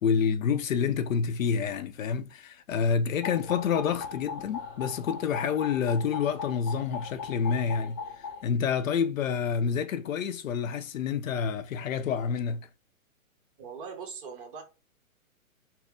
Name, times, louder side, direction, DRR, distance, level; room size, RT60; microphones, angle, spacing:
voice 1, 0.0-12.7, left 6 dB, 65° left, 0.5 m, -28 dB
sound 1, 3.2-8.4, left 5 dB, 25° left, 0.9 m, -39 dB
voice 2, 13.6-14.6, right 5 dB, 35° right, 1.0 m, -41 dB
4.2 x 2.0 x 3.4 m
hypercardioid pair, 155°, 43 cm